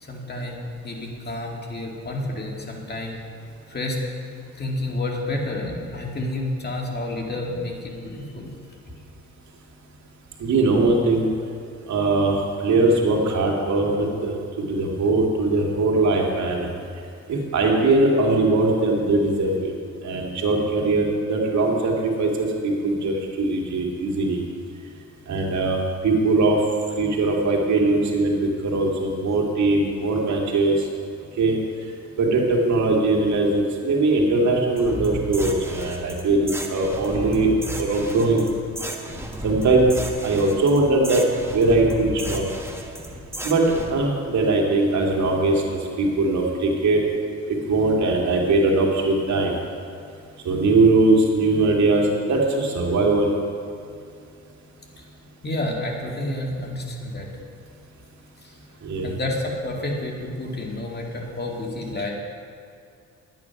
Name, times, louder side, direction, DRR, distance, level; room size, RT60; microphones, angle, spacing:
voice 1, 0.0-3.2 3.7-4.0 4.6-8.5 55.4-57.3 58.4-58.6 59.0-62.1, left 1 dB, 35° left, -1 dB, 2.2 m, -30 dB
voice 2, 10.4-11.3 11.9-14.3 14.7-16.7 17.3-19.7 20.0-24.4 25.3-25.8 26.0-26.6 27.0-30.8 31.4-31.6 32.2-38.4 39.4-39.9 40.2-41.2 41.5-42.4 43.4-43.6 43.9-47.0 47.5-49.5 50.4-53.3 58.8-59.1, right 2 dB, 65° right, 0 dB, 2.2 m, -21 dB
sound 1, 34.8-43.9, right 1 dB, 10° right, 1.3 m, -33 dB
11.0 x 9.2 x 5.8 m, 2.4 s
cardioid pair, 90°, 30 cm